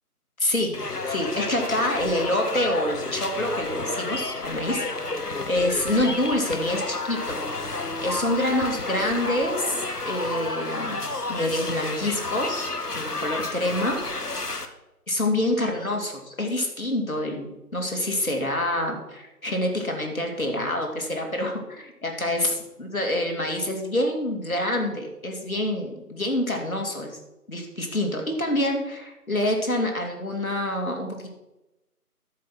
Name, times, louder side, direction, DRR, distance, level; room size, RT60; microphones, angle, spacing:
voice 1, 0.4-0.8 1.0-4.8 5.5-7.4 8.0-11.0 11.3-12.7 12.9-14.0 15.1-27.2 27.5-31.3, left 1 dB, 60° left, 2 dB, 2.9 m, -26 dB
sound 1, 0.7-14.7, left 2 dB, 85° left, 1.4 m, -31 dB
13.5 x 5.7 x 6.0 m, 0.95 s
figure-of-eight pair, 170°, 46 cm